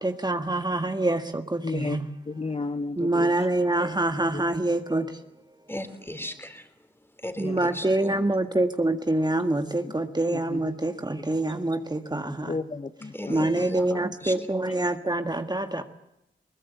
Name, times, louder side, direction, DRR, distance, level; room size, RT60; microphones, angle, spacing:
voice 1, 0.0-2.0 3.0-5.2 7.4-12.5 13.3-15.8, right 2 dB, 20° right, 7 dB, 1.8 m, -26 dB
voice 2, 1.6-3.3 4.3-4.4 7.4-7.8 9.8-9.9 10.3-10.8 11.2-11.3 11.6-11.7 12.4-13.7, left 3 dB, 30° left, 10 dB, 1.0 m, -34 dB
voice 3, 5.7-6.7 7.1-8.2 13.1-14.3, left 1 dB, 10° left, 10 dB, 3.7 m, -37 dB
22.0 x 20.0 x 8.2 m, 0.85 s
cardioid pair, 45°, 19 cm